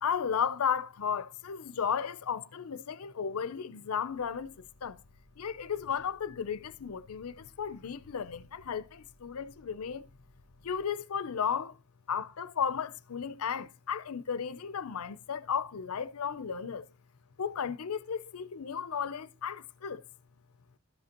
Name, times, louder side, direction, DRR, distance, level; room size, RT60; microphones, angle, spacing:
voice 1, 0.0-5.0 5.4-10.1 10.6-11.8 12.1-16.9 17.4-20.0, left 7 dB, 80° left, 0.6 m, -34 dB
sound 1, 4.1-10.8, equal, 50° right, 4.9 m, -63 dB
12.5 x 7.7 x 2.9 m
head